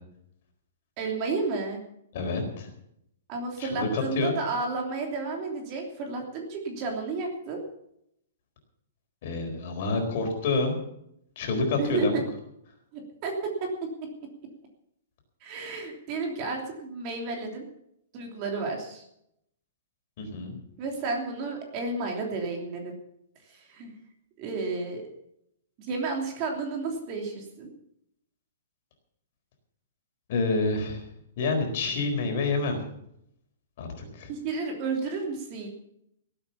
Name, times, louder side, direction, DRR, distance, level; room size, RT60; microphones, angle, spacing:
voice 1, 1.0-1.8 3.3-7.6 11.8-12.2 12.9-13.7 15.4-17.6 18.1-19.0 20.8-22.9 23.5-23.9 24.4-25.0 25.8-27.7 34.3-35.7, right 3 dB, 30° right, 1 dB, 3.1 m, -32 dB
voice 2, 2.1-2.7 3.6-4.3 9.2-10.8 11.4-12.2 20.2-20.6 30.3-31.1 31.4-32.8 33.8-34.3, left 3 dB, 45° left, 4 dB, 4.1 m, -28 dB
17.5 x 8.8 x 7.0 m, 0.75 s
hypercardioid pair, 170°, 0 cm